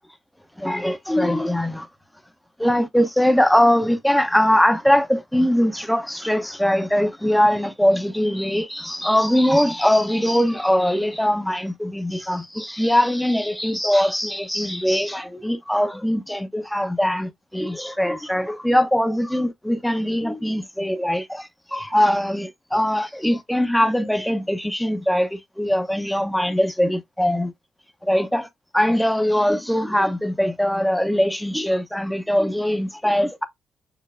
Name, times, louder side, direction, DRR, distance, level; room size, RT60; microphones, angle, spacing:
voice 1, 0.6-1.9 2.6-27.5 28.0-28.5 28.7-33.4, equal, 5° left, 0.7 m, -21 dB
6.7 x 2.3 x 2.4 m
supercardioid pair, 65°, 0 cm